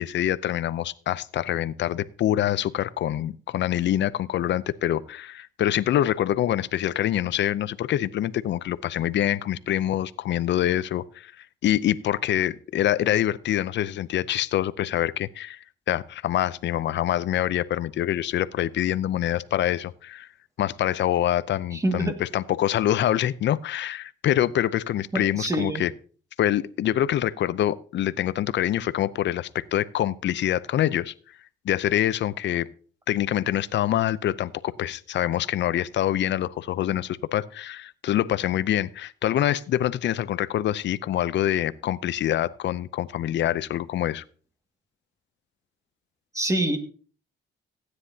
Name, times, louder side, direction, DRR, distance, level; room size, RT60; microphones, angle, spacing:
voice 1, 0.0-15.6 15.9-20.3 20.6-25.9 26.4-31.1 31.6-32.7 33.1-44.2, left 12 dB, 65° left, 16 dB, 0.6 m, -25 dB
voice 2, 21.7-22.1 25.1-25.8 46.3-46.8, right 1 dB, 15° right, 5 dB, 2.0 m, -25 dB
16.0 x 9.7 x 2.8 m, 0.42 s
cardioid pair, 90°, 20 cm